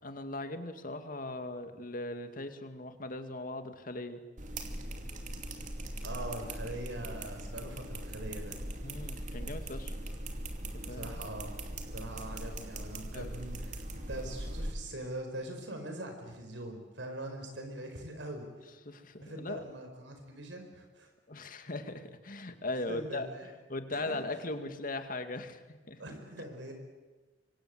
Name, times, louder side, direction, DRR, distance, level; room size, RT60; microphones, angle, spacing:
voice 1, 0.0-4.2 8.8-10.0 10.7-11.1 13.1-13.3 18.9-19.6 21.3-26.0, left 2 dB, 50° left, 8 dB, 2.2 m, -39 dB
sound 1, 4.4-14.7, right 1 dB, 45° right, 2.7 m, -40 dB
voice 2, 6.0-8.6 10.9-11.5 11.9-13.8 14.1-18.5 19.2-21.1 22.9-23.5 23.9-24.2 26.0-26.7, right 1 dB, 85° right, 5 dB, 5.1 m, -42 dB
25.5 x 24.5 x 8.0 m, 1.2 s
head